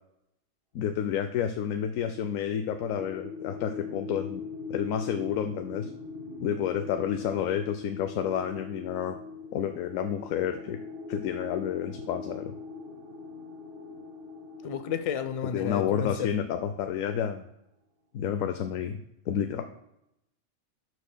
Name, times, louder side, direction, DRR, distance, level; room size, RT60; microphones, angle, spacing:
voice 1, 0.7-4.4 4.7-5.9 6.4-9.2 9.5-10.8 11.1-12.5 15.5-17.4 18.1-19.0 19.3-19.6, left 9 dB, 85° left, 8 dB, 1.0 m, -30 dB
sound 1, 2.2-16.6, left 4 dB, 50° right, 1.0 m, -41 dB
voice 2, 14.6-16.4, left 8 dB, 45° left, 9 dB, 0.4 m, -32 dB
12.0 x 6.3 x 2.2 m, 0.81 s
omnidirectional pair, 1.4 m